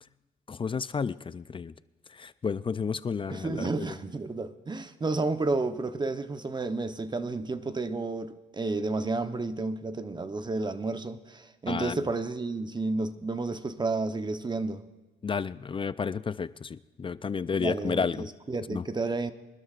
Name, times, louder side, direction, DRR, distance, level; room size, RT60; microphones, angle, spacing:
voice 1, 0.5-1.7 2.2-3.7 11.7-12.0 15.2-18.3 18.7-18.8, left 5 dB, 25° left, 16 dB, 0.4 m, -31 dB
voice 2, 3.3-14.8 17.6-19.3, right 3 dB, 20° right, 10 dB, 0.9 m, -31 dB
24.0 x 12.5 x 2.5 m, 1.2 s
cardioid pair, 90°, 20 cm